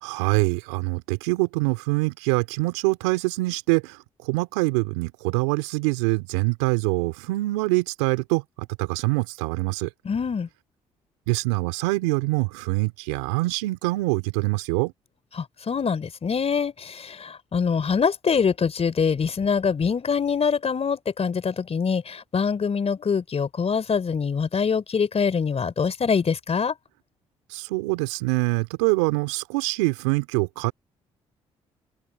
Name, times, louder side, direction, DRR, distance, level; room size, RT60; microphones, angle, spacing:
voice 1, 0.0-4.0 4.2-9.9 11.3-14.9 27.5-30.7, right 24 dB, 85° right, 3.5 m, -24 dB
voice 2, 10.0-10.5 15.3-26.8, left 6 dB, 45° left, 4.4 m, -24 dB
open air
hypercardioid pair, 50°, 15 cm